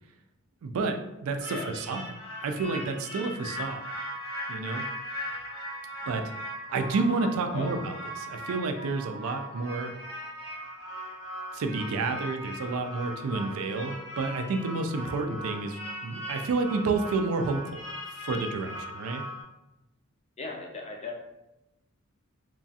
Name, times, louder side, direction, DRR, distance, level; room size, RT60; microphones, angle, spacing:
voice 1, 0.6-1.0 1.2-2.0 2.4-3.8 4.5-4.8 6.1-6.2 6.7-9.9 11.5-17.8 18.1-19.2, right 3 dB, 85° right, 6 dB, 0.3 m, -30 dB
sound 1, 1.4-19.4, equal, 90° left, 0.9 m, -39 dB
voice 2, 20.4-21.1, left 3 dB, 30° left, 1 dB, 0.4 m, -37 dB
3.0 x 2.4 x 2.7 m, 0.94 s
head